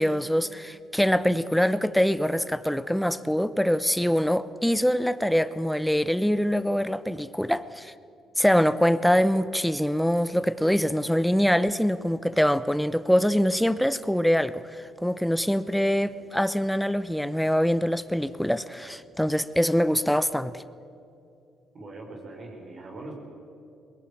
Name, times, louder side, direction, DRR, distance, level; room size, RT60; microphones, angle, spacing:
voice 1, 0.0-7.9 8.4-20.6, equal, 5° left, 14 dB, 0.8 m, -24 dB
voice 2, 21.7-23.1, right 2 dB, 50° right, 1 dB, 5.1 m, -41 dB
20.5 x 18.5 x 8.6 m, 2.5 s
supercardioid pair, 65°, 0 cm